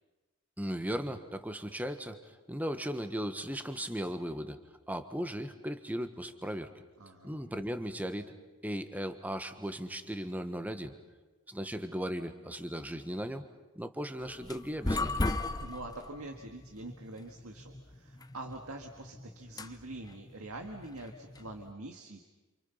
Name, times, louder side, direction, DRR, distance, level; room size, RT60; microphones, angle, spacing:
voice 1, 0.6-4.6 4.9-6.7 7.2-8.3 8.6-10.9 11.5-13.4 13.7-15.2, equal, 5° right, 9 dB, 1.3 m, -37 dB
voice 2, 7.0-7.3 15.5-22.3, right 2 dB, 75° right, 3 dB, 1.9 m, -45 dB
sound 1, 14.2-21.7, left 2 dB, 15° left, 0.7 m, -37 dB
28.5 x 28.0 x 5.7 m, 1.2 s
head